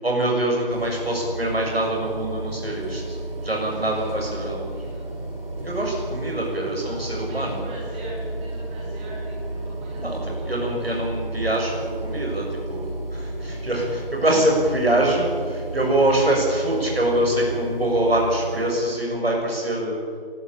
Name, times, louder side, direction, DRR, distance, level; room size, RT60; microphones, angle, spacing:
voice 1, 0.0-3.2 3.4-4.8 5.6-7.7 10.0-11.7 12.0-20.0, right 1 dB, 90° right, 0 dB, 7.0 m, -24 dB
sound 1, 0.7-18.7, right 2 dB, 70° right, 5.2 m, -32 dB
voice 2, 3.6-5.1 6.7-10.7, right 1 dB, 10° right, -5 dB, 3.7 m, -41 dB
18.5 x 18.0 x 8.6 m, 2.2 s
figure-of-eight pair, 170°, 30 cm